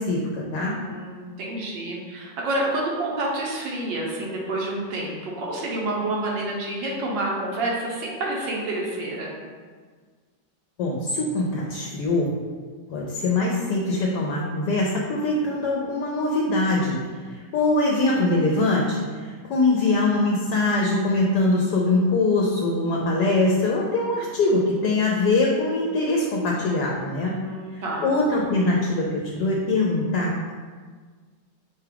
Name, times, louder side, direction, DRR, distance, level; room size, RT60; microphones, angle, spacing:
voice 1, 0.0-0.8 10.8-12.3 12.9-17.0 17.2-27.4 27.7-30.5, left 2 dB, 75° left, -2 dB, 1.1 m, -23 dB
voice 2, 0.6-9.3 27.2-28.1, right 2 dB, 85° right, -3 dB, 1.6 m, -29 dB
6.0 x 2.3 x 3.4 m, 1.5 s
omnidirectional pair, 1.9 m